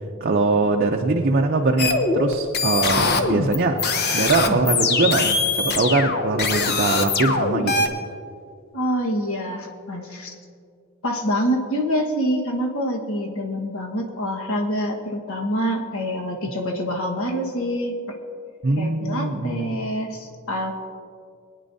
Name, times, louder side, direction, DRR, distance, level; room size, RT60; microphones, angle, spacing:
voice 1, 0.2-3.8 4.1-7.8 18.6-19.8, right 3 dB, 45° right, 2 dB, 0.6 m, -22 dB
sound 1, 1.8-7.9, left 4 dB, 45° left, 0.8 m, -22 dB
voice 2, 8.7-10.3 11.0-18.0 18.7-20.7, equal, 65° left, 1 dB, 1.4 m, -26 dB
21.0 x 9.6 x 2.7 m, 2.2 s
head